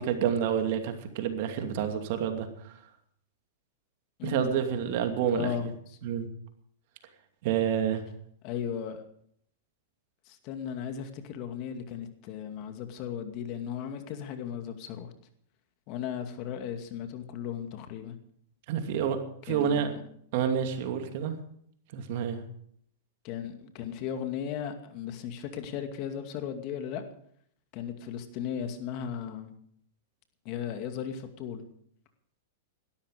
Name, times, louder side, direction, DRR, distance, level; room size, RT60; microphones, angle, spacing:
voice 1, 0.0-2.7 4.2-5.7 6.0-6.3 7.4-8.0 18.7-19.9 20.3-21.4 21.9-22.4, right 8 dB, 60° right, 6 dB, 2.6 m, -29 dB
voice 2, 4.2-4.5 5.3-5.7 8.4-9.1 10.3-15.1 15.9-18.2 19.5-20.0 23.2-27.0 27.7-29.5 30.4-31.6, left 8 dB, 45° left, 7 dB, 2.3 m, -36 dB
17.5 x 13.0 x 5.2 m, 0.65 s
hypercardioid pair, 120°, 0 cm